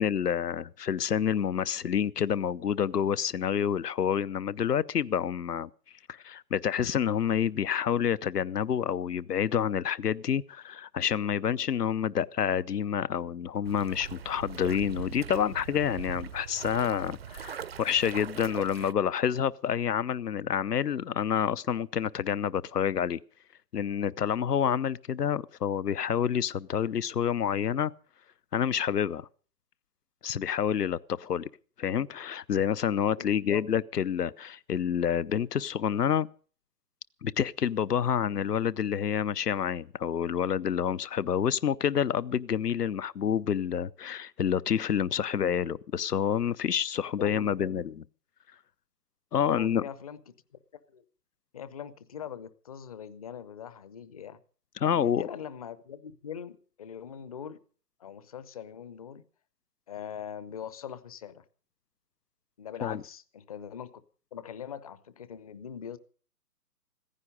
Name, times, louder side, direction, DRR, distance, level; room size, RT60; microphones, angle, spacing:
voice 1, 0.0-5.7 6.1-23.2 23.7-27.9 28.5-29.3 30.2-31.5 31.8-36.3 37.2-47.9 49.3-49.8 54.8-55.2 62.8-63.0, left 8 dB, 70° left, 0.8 m, -28 dB
sound 1, 13.7-18.9, right 8 dB, 40° right, 0.7 m, -41 dB
voice 2, 33.2-33.6 47.2-47.9 49.4-50.3 50.9-51.0 51.5-54.4 54.8-57.6 58.0-59.2 59.9-61.4 62.6-64.0 64.3-66.0, left 8 dB, 25° left, 0.7 m, -42 dB
16.0 x 15.0 x 5.3 m
figure-of-eight pair, 135°, 48 cm